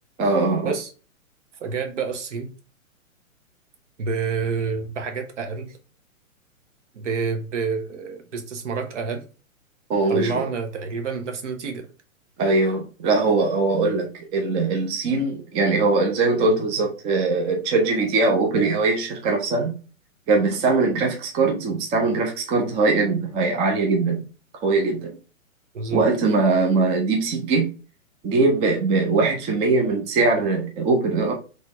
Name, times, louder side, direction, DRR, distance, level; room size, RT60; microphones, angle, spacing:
voice 1, 0.2-0.7 9.9-10.4 12.4-19.8 20.3-24.2 24.6-25.1 25.9-27.7 28.2-31.3, right 3 dB, 15° right, 0.6 m, -21 dB
voice 2, 1.6-2.5 4.0-5.8 6.9-9.2 10.1-11.9 25.7-26.0, right 5 dB, 60° right, 1.3 m, -28 dB
4.0 x 3.2 x 3.6 m
figure-of-eight pair, 125°, 41 cm